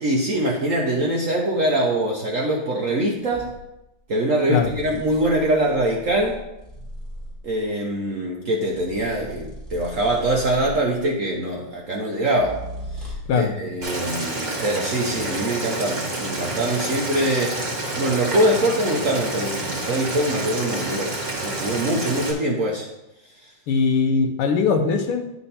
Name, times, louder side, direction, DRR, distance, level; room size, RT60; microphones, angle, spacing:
voice 1, 0.0-3.5 4.1-6.4 7.4-12.6 13.0-17.6 17.9-21.1 21.4-22.9, right 1 dB, 55° right, -2 dB, 0.9 m, -23 dB
sound 1, 3.3-3.6 4.5-7.5 8.7-11.0 12.3-13.4, equal, ahead, 1.4 m, -38 dB
Boiling, 13.8-22.3, right 2 dB, 35° right, 1.9 m, -28 dB
voice 2, 23.7-25.4, left 5 dB, 80° left, 5 dB, 1.7 m, -20 dB
10.0 x 4.4 x 4.2 m, 0.92 s
omnidirectional pair, 2.4 m